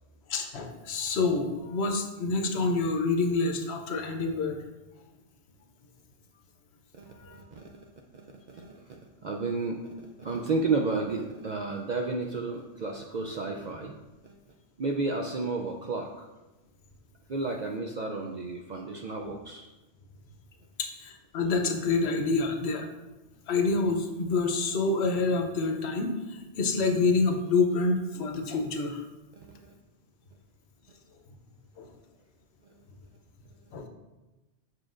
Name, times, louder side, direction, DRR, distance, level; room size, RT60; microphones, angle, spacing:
voice 1, 0.3-4.6 7.2-7.4 20.8-22.9 23.5-29.1 31.8-31.9 33.7-33.9, left 3 dB, 70° left, 5 dB, 0.9 m, -27 dB
voice 2, 7.0-13.9 14.2-14.3 14.8-16.3 17.3-19.7 29.4-29.7, right 3 dB, 60° right, 1 dB, 0.5 m, -32 dB
7.4 x 6.1 x 2.5 m, 1.1 s
omnidirectional pair, 1.2 m